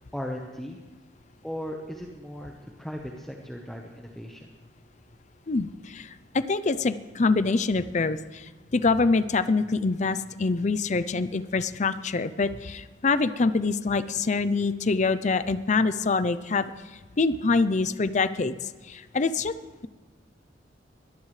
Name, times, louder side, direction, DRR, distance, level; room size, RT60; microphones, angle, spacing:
voice 1, 0.1-0.8 1.4-2.5 2.8-4.5, equal, ahead, 0 dB, 1.1 m, -37 dB
voice 2, 5.5-8.5 8.7-16.7 17.2-18.5 18.9-19.5, left 3 dB, 40° left, 13 dB, 0.5 m, -25 dB
22.5 x 17.5 x 3.3 m, 1.2 s
head